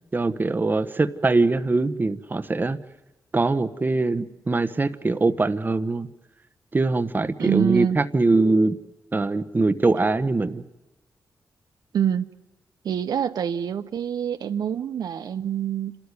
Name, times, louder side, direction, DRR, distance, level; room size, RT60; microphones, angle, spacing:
voice 1, 0.1-2.8 3.3-6.1 6.7-8.8 9.1-10.6, right 3 dB, 30° right, 11 dB, 1.2 m, -22 dB
voice 2, 7.4-8.0 11.9-12.3 12.8-16.0, right 9 dB, 80° right, 10 dB, 0.8 m, -25 dB
29.0 x 13.5 x 9.6 m, 1.0 s
cardioid pair, 90°, 7 cm